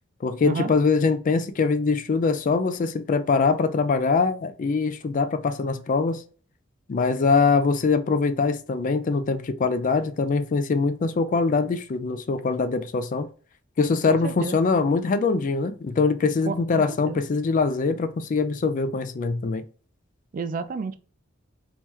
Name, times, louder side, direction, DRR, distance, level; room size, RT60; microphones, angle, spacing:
voice 1, 0.2-6.2 6.9-13.3 13.8-19.6, left 4 dB, 40° left, 0.4 m, -23 dB
voice 2, 14.1-14.6 16.5-17.2 20.3-21.0, right 5 dB, 40° right, 0.3 m, -31 dB
3.0 x 2.9 x 3.6 m
head